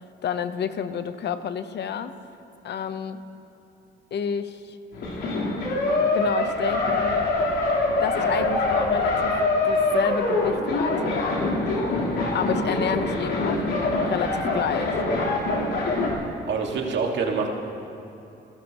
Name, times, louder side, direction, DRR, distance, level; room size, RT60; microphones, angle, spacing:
voice 1, 0.2-2.1 2.6-3.2 4.1-4.8 6.1-7.3 8.0-9.3 9.7-11.4 12.3-14.9, left 7 dB, 60° left, 10 dB, 0.9 m, -29 dB
sound 1, 4.9-16.1, left 2 dB, 85° left, 3.8 m, -24 dB
voice 2, 16.5-17.5, right 5 dB, 65° right, 1 dB, 2.0 m, -25 dB
28.0 x 13.0 x 3.0 m, 2.9 s
cardioid pair, 90°, 20 cm